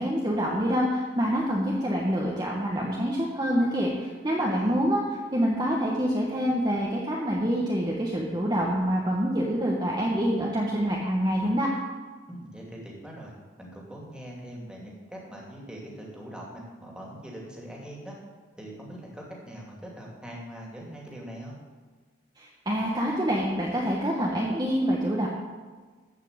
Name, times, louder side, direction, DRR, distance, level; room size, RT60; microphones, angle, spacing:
voice 1, 0.0-5.0 5.3-11.7 22.4-25.3, equal, 20° right, -3 dB, 1.3 m, -26 dB
voice 2, 4.4-4.7 12.3-18.2 18.6-21.5, right 1 dB, 5° right, -3 dB, 2.7 m, -42 dB
14.0 x 5.7 x 8.1 m, 1.4 s
head